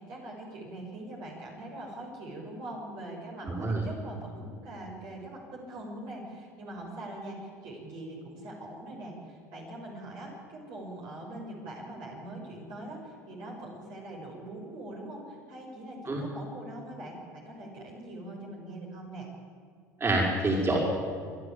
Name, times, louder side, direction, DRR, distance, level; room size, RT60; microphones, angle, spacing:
voice 1, 0.0-19.3, right 1 dB, 60° right, -1 dB, 6.4 m, -42 dB
voice 2, 3.4-3.8 16.1-16.2 20.0-20.8, right 2 dB, 30° right, -2 dB, 5.6 m, -26 dB
26.5 x 11.5 x 8.8 m, 2.2 s
hypercardioid pair, 65°, 8 cm